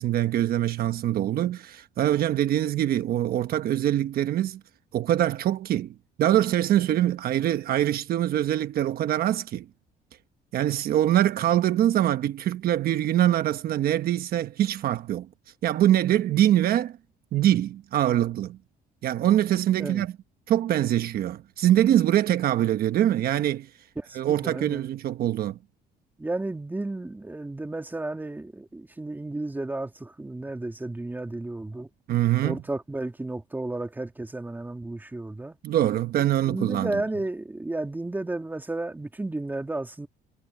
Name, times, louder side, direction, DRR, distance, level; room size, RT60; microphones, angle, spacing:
voice 1, 0.0-4.6 4.9-9.7 10.5-15.3 15.6-17.0 17.3-18.6 19.0-20.1 20.5-23.7 24.1-25.6 32.1-32.6 35.6-37.0, right 12 dB, 60° right, 1.2 m, -24 dB
voice 2, 24.0-24.9 26.2-31.9 32.4-35.6 36.3-40.1, right 2 dB, 10° right, 2.4 m, -33 dB
cardioid pair, 110°, 17 cm